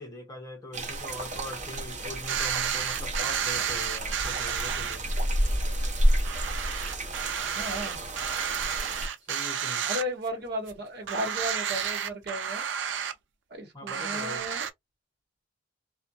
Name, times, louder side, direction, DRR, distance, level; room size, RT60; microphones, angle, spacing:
voice 1, 0.0-5.1 9.2-9.9 13.7-14.4, left 1 dB, 20° left, 0.7 m, -41 dB
sound 1, 0.7-9.1, right 1 dB, 40° right, 0.7 m, -30 dB
sound 2, 2.3-5.0 5.4-5.5 5.9-6.0 6.2-10.4 10.7-10.8 11.1-13.1 13.9-14.7, right 8 dB, 80° right, 0.4 m, -31 dB
voice 2, 7.5-8.0 9.8-12.6 13.5-14.7, equal, 55° right, 1.0 m, -34 dB
2.4 x 2.1 x 2.6 m
head